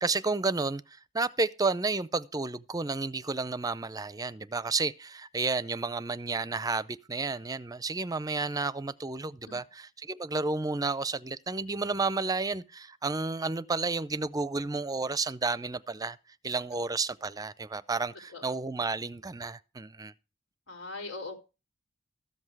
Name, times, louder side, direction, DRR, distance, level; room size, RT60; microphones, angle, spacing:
voice 1, 0.0-16.2 16.4-20.1, right 3 dB, 20° right, 0.5 m, -31 dB
voice 2, 20.7-21.4, left 3 dB, 85° left, 3.7 m, -40 dB
14.0 x 7.8 x 4.7 m
head